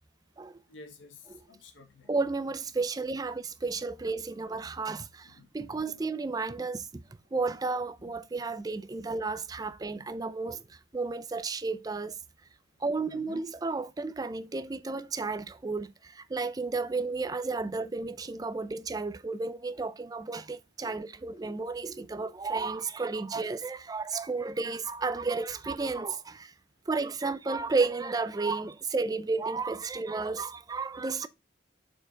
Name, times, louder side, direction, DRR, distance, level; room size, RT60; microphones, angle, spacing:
voice 1, 0.7-2.1 5.4-5.8 9.9-10.1 13.1-13.4, left 2 dB, 85° left, 1.6 m, -51 dB
voice 2, 2.1-7.0 7.3-12.2 12.8-26.5 26.9-31.3, right 3 dB, 20° right, 0.4 m, -32 dB
6.6 x 4.6 x 4.3 m
head